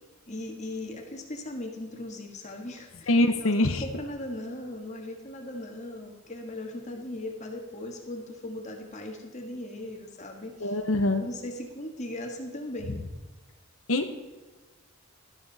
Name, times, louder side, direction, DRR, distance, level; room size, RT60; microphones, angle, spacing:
voice 1, 0.3-13.0, left 1 dB, 35° left, 3 dB, 1.8 m, -38 dB
voice 2, 3.1-3.8 10.6-11.2 13.9-14.1, left 1 dB, 80° left, 6 dB, 1.1 m, -24 dB
13.0 x 13.0 x 4.2 m, 1.3 s
head